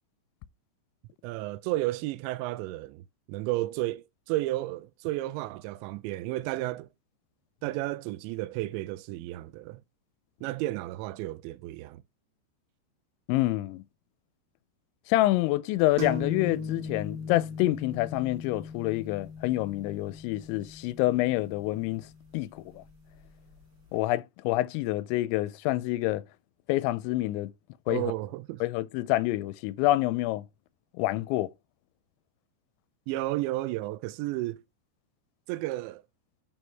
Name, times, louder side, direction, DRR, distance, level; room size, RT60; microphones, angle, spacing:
voice 1, 1.2-6.9 7.6-9.8 10.4-12.0 27.9-28.6 33.1-34.6 35.5-36.0, right 17 dB, 85° right, 2.9 m, -32 dB
voice 2, 13.3-13.8 15.1-22.0 22.3-22.8 23.9-26.2 26.7-27.5 27.9-28.0 28.6-30.4 31.0-31.5, left 17 dB, 85° left, 2.9 m, -27 dB
sound 1, 16.0-23.5, left 4 dB, 50° right, 1.4 m, -39 dB
7.8 x 6.3 x 3.3 m
omnidirectional pair, 5.3 m